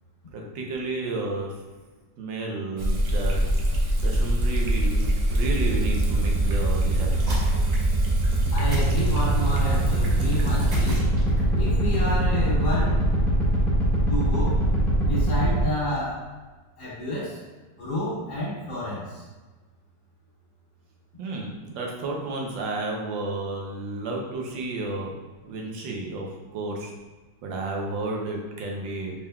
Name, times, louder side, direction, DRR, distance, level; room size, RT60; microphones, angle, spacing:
voice 1, 0.3-1.6 2.2-3.4 4.0-7.3 21.2-25.2 25.4-26.9 27.4-29.1, right 2 dB, 90° right, 0 dB, 1.5 m, -32 dB
sound 1, 2.8-15.6, right 1 dB, ahead, 1.2 m, -23 dB
Water tap faucet / Sink (filling or washing), 2.8-11.0, right 2 dB, 70° right, 0.6 m, -43 dB
sound 2, 7.2-8.0 8.7-9.6 10.7-11.6, left 1 dB, 30° right, 1.6 m, -33 dB
voice 2, 8.5-11.0 11.6-13.1 14.1-14.6 15.0-16.3 16.8-17.4 17.8-19.2, left 1 dB, 50° left, -7 dB, 1.5 m, -30 dB
4.4 x 3.6 x 2.3 m, 1.3 s
omnidirectional pair, 1.9 m